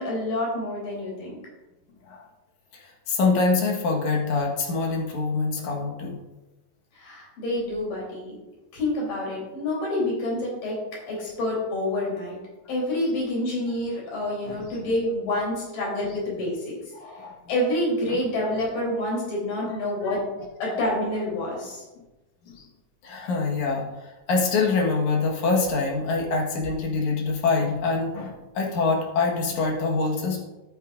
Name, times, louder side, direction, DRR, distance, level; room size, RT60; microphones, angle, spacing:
voice 1, 0.0-1.4 6.9-8.4 8.7-10.8 11.1-12.4 12.7-16.8 17.5-20.3 20.6-21.9, left 1 dB, 80° left, -4 dB, 5.2 m, -27 dB
voice 2, 2.7-6.2 14.5-14.8 16.9-17.4 22.6-22.7 23.0-30.4, left 4 dB, 65° left, -1 dB, 2.8 m, -25 dB
11.5 x 9.1 x 2.6 m, 1.1 s
omnidirectional pair, 3.8 m